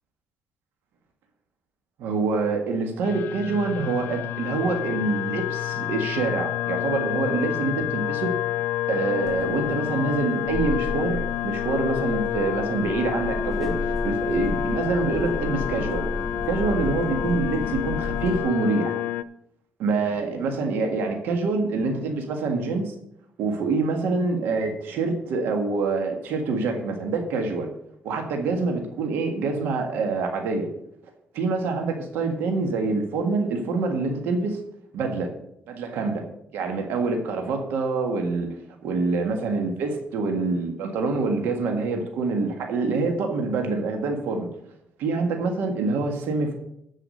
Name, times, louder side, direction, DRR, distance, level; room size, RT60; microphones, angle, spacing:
voice 1, 2.0-8.3 8.9-13.7 14.0-16.0 16.5-18.9 19.8-22.9 23.4-27.7 28.0-30.7 31.3-34.6 34.9-35.3 35.7-36.2 36.5-44.5 45.0-46.5, right 3 dB, 90° right, 4 dB, 1.7 m, -26 dB
sound 1, 3.0-19.2, left 12 dB, 75° left, 0.4 m, -29 dB
sound 2, 9.3-18.4, left 1 dB, ahead, 1.2 m, -33 dB
13.0 x 4.9 x 6.4 m, 0.76 s
cardioid pair, 105°, 3 cm